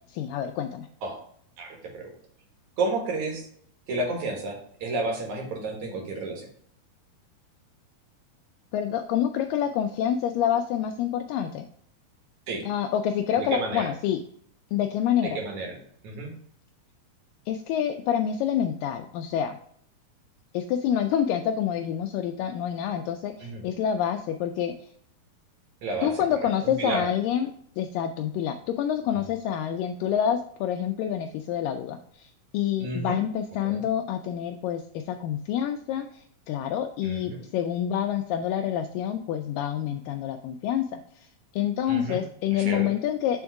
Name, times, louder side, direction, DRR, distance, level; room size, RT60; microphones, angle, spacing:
voice 1, 0.1-0.9 8.7-11.6 12.7-14.2 14.7-15.4 17.5-19.6 20.5-24.9 26.0-27.5 27.8-41.3 41.5-43.4, left 9 dB, 85° left, 5 dB, 2.0 m, -27 dB
voice 2, 1.6-2.1 2.8-3.5 3.9-6.5 12.5-12.7 13.4-13.9 15.2-15.8 16.0-16.3 23.4-23.6 25.8-26.1 26.6-27.1 29.2-29.3 32.8-33.2 33.6-33.8 37.0-37.4 41.9-42.2 42.5-42.9, right 2 dB, 60° right, 2 dB, 2.5 m, -31 dB
7.0 x 3.6 x 4.6 m, 0.63 s
omnidirectional pair, 4.3 m